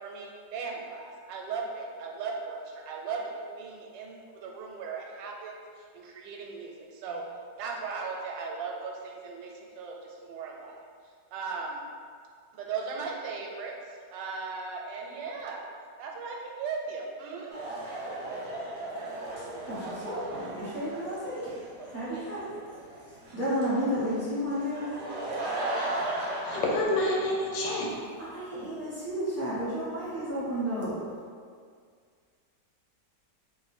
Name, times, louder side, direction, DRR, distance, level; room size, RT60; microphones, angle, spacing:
voice 1, 0.0-7.2 7.6-10.8 11.3-11.8 12.5-15.6 16.0-17.8, right 4 dB, 85° right, 0 dB, 1.3 m, -37 dB
sound 1, 17.5-26.8, right 2 dB, 60° right, 0.6 m, -36 dB
voice 2, 19.7-21.5 21.9-22.4 23.3-25.0 28.2-31.0, equal, 15° right, -12 dB, 0.6 m, -32 dB
voice 3, 26.4-27.9, left 1 dB, 80° left, -3 dB, 1.4 m, -28 dB
3.1 x 2.4 x 4.1 m, 2.1 s
omnidirectional pair, 2.0 m